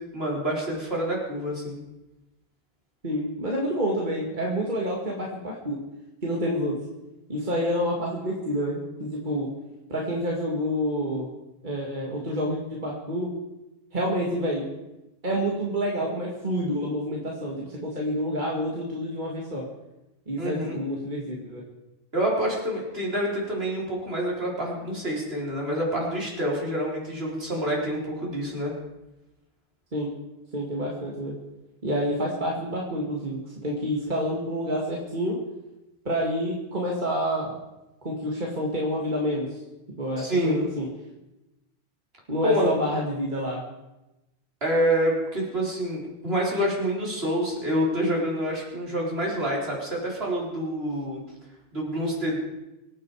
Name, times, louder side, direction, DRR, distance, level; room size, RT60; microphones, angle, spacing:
voice 1, 0.0-1.8 20.4-20.8 22.1-28.7 40.2-40.6 42.4-42.8 44.6-51.2 51.7-52.4, equal, 75° right, -3 dB, 4.6 m, -27 dB
voice 2, 3.0-5.8 6.2-6.8 7.3-9.5 9.9-11.3 11.6-13.3 13.9-14.7 15.2-19.6 20.3-21.6 29.9-30.1 30.5-31.3 31.8-35.4 36.0-37.5 38.0-39.6 40.0-40.9 42.3-43.6, equal, 50° right, -2 dB, 2.4 m, -28 dB
24.5 x 9.1 x 4.9 m, 0.97 s
omnidirectional pair, 1.1 m